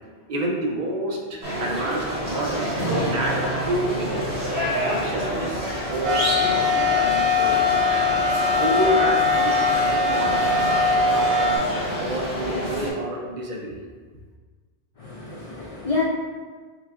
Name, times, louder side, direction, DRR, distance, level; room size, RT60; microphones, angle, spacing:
voice 1, 0.3-4.4 4.9-7.9 8.5-10.8 12.0-13.8, right 1 dB, 50° right, 0 dB, 0.7 m, -29 dB
sound 1, 1.4-12.9, equal, 70° right, 1.7 m, -28 dB
sound 2, 2.8-7.1, right 2 dB, 80° left, 2.0 m, -35 dB
sound 3, 6.0-11.6, left 3 dB, 90° right, 1.1 m, -21 dB
voice 2, 15.0-16.0, left 4 dB, 55° left, -2 dB, 0.4 m, -28 dB
4.6 x 3.7 x 2.5 m, 1.5 s
omnidirectional pair, 1.1 m